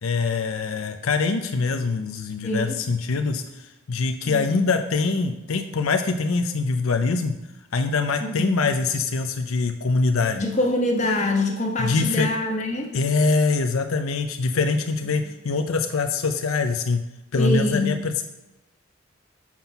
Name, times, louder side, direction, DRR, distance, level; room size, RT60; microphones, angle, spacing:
voice 1, 0.0-7.3 7.7-10.4 11.8-12.3 12.9-17.0 17.3-18.2, left 4 dB, 85° left, 6 dB, 0.6 m, -24 dB
voice 2, 2.4-2.8 4.2-4.6 8.2-8.5 10.3-12.9 17.3-18.0, left 1 dB, 35° left, 2 dB, 1.3 m, -25 dB
7.4 x 5.8 x 5.7 m, 0.98 s
head